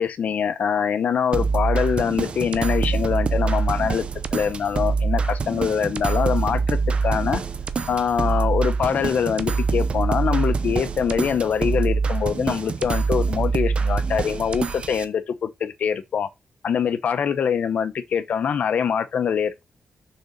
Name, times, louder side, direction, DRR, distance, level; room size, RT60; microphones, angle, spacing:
voice 1, 0.0-4.1 4.3-7.4 7.9-16.3 16.6-19.6, left 7 dB, 65° left, 0.8 m, -24 dB
sound 1, 1.3-15.0, right 4 dB, 40° right, 0.7 m, -24 dB
6.7 x 3.8 x 5.2 m
wide cardioid pair, 135°, 3 cm